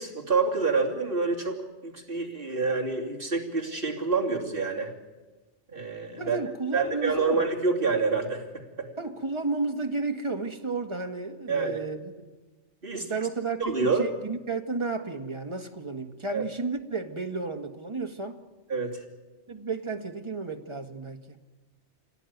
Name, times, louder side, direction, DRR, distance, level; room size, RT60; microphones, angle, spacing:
voice 1, 0.0-4.9 5.7-6.4 6.7-8.9 11.5-11.8 12.8-13.2 13.6-14.1 16.3-16.4 18.7-19.0, right 4 dB, 50° right, 3.0 m, -27 dB
voice 2, 6.2-7.4 9.0-12.1 12.9-18.4 19.5-21.4, right 3 dB, 25° right, 1.7 m, -32 dB
25.5 x 17.5 x 9.3 m
omnidirectional pair, 1.2 m